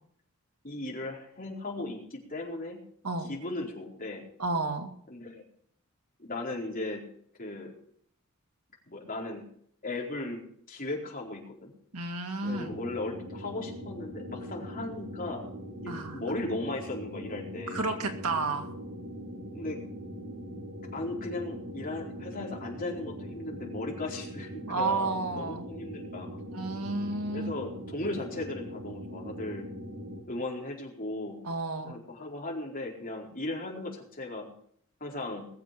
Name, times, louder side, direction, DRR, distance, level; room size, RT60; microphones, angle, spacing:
voice 1, 0.6-2.8 3.3-4.3 5.1-5.4 6.2-7.0 7.4-7.7 8.9-9.4 9.8-10.4 10.7-11.7 12.4-17.8 19.5-19.8 20.9-26.4 27.3-29.7 30.3-31.4 31.8-34.5 35.0-35.5, left 2 dB, 40° left, -1 dB, 4.5 m, -37 dB
voice 2, 4.4-4.9 11.9-12.7 15.9-16.2 17.7-18.7 24.7-25.7 26.5-27.5 31.4-32.0, right 3 dB, 90° right, 4 dB, 2.6 m, -31 dB
sound 1, 12.4-30.2, equal, 65° right, 6.3 m, -41 dB
20.5 x 7.8 x 6.7 m, 0.63 s
head